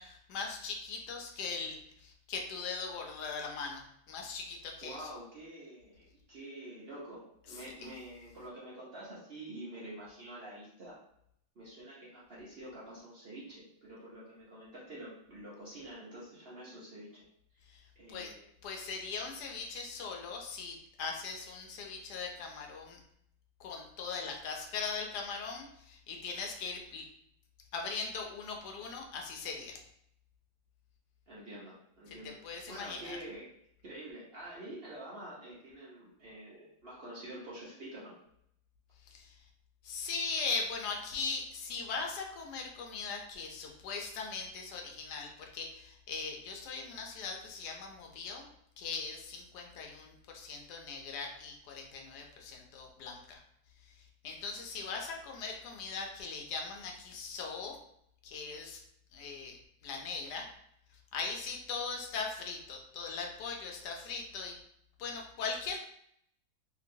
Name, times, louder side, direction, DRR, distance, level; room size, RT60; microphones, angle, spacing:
voice 1, 0.0-5.1 7.5-7.9 17.7-17.8 18.1-18.3 18.6-23.0 23.6-27.0 27.7-29.8 32.1-32.2 32.4-33.2 39.1-39.4 39.8-48.5 48.8-53.4 53.9-57.8 58.2-58.8 59.1-59.6 59.8-60.5 61.1-64.6 65.0-65.8, left 4 dB, 80° left, 1 dB, 1.2 m, -40 dB
voice 2, 4.8-10.9 11.6-17.2 18.0-18.5 31.3-32.4 32.7-33.4 33.8-38.1, right 1 dB, 50° right, -7 dB, 0.8 m, -47 dB
2.9 x 2.8 x 2.6 m, 0.71 s
omnidirectional pair, 1.7 m